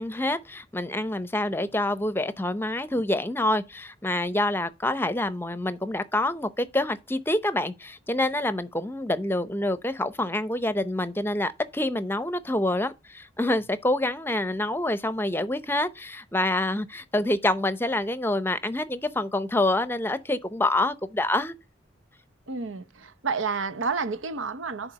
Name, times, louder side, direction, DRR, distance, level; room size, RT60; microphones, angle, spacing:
voice 1, 0.0-21.5, left 1 dB, 10° left, 0.7 m, -27 dB
voice 2, 22.5-24.9, right 4 dB, 85° right, 0.9 m, -30 dB
7.1 x 4.3 x 6.4 m
head